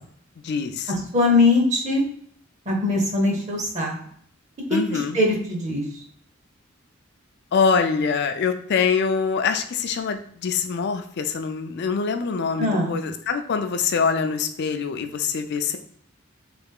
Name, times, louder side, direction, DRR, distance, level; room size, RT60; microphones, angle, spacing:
voice 1, 0.4-0.9 4.7-5.2 7.5-15.8, left 5 dB, 55° left, 7 dB, 0.4 m, -24 dB
voice 2, 1.1-2.0 2.7-3.9 4.7-5.8 12.6-13.0, left 2 dB, 35° right, 1 dB, 0.7 m, -21 dB
3.3 x 2.4 x 3.4 m, 0.64 s
head